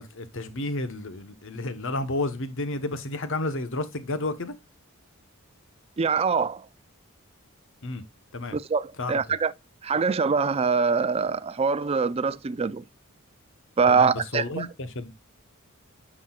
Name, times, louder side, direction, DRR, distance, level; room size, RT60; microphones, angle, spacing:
voice 1, 0.0-4.5 7.8-8.0 8.3-8.6 9.0-9.4 13.9-15.1, left 2 dB, 65° left, 1.1 m, -31 dB
voice 2, 6.0-6.7 8.5-9.5 9.8-12.8 13.8-14.7, right 5 dB, 30° right, 0.4 m, -24 dB
10.0 x 6.2 x 2.4 m
head